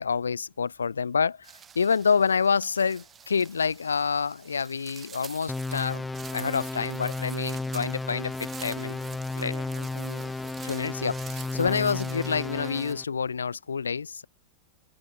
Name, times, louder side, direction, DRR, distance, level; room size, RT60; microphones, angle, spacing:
voice 1, 0.0-9.0 9.4-9.6 10.6-14.3, left 6 dB, 75° left, 1.4 m, -28 dB
sound 1, 1.4-12.9, right 8 dB, 20° right, 1.3 m, -47 dB
sound 2, 5.5-13.0, left 3 dB, 10° left, 0.5 m, -33 dB
voice 2, 8.7-11.0 11.7-11.8, right 10 dB, 60° right, 3.9 m, -48 dB
open air
figure-of-eight pair, 90°, 0 cm